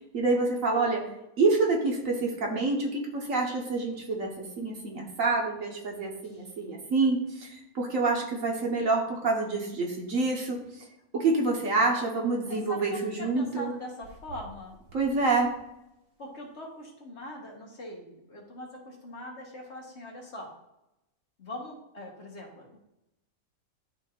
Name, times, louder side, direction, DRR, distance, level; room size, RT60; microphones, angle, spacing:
voice 1, 0.1-1.1 1.4-10.6 11.1-13.7 14.9-15.5, right 3 dB, 65° right, 0 dB, 1.5 m, -27 dB
voice 2, 6.2-6.5 12.5-14.8 16.2-20.5 21.4-22.8, left 1 dB, 50° left, -1 dB, 1.6 m, -42 dB
11.5 x 4.4 x 2.5 m, 0.89 s
omnidirectional pair, 1.5 m